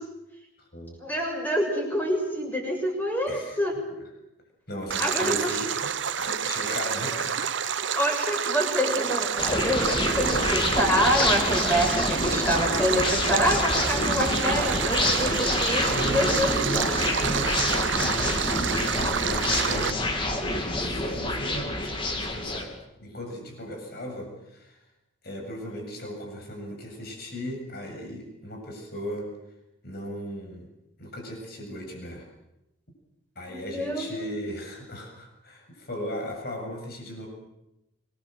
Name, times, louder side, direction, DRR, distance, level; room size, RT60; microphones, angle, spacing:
voice 1, 1.0-3.7 5.0-5.6 7.9-16.5 33.5-34.1, equal, 10° left, 1 dB, 6.7 m, -26 dB
voice 2, 3.3-3.6 4.7-7.8 9.9-10.3 15.8-22.7 23.0-24.8 25.2-29.3 29.8-30.6 31.0-32.3 33.4-37.3, equal, 50° left, 2 dB, 7.5 m, -37 dB
Stream, 4.9-19.9, right 7 dB, 65° right, 0.9 m, -28 dB
sound 1, 9.4-22.6, left 2 dB, 25° left, 3.0 m, -27 dB
26.0 x 21.5 x 7.8 m, 0.89 s
head